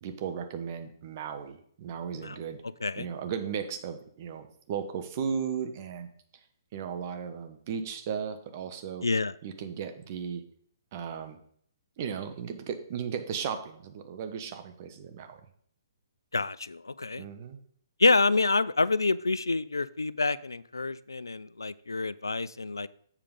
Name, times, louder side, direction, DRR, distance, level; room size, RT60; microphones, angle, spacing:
voice 1, 0.0-2.6 3.0-6.1 6.7-9.1 9.4-10.4 10.9-11.4 12.0-15.4 17.2-17.6, right 7 dB, 40° right, 7 dB, 1.0 m, -36 dB
voice 2, 9.0-9.3 16.3-17.3 18.0-22.9, left 3 dB, 85° left, 18 dB, 0.3 m, -27 dB
7.4 x 5.0 x 5.3 m, 0.62 s
figure-of-eight pair, 130°, 2 cm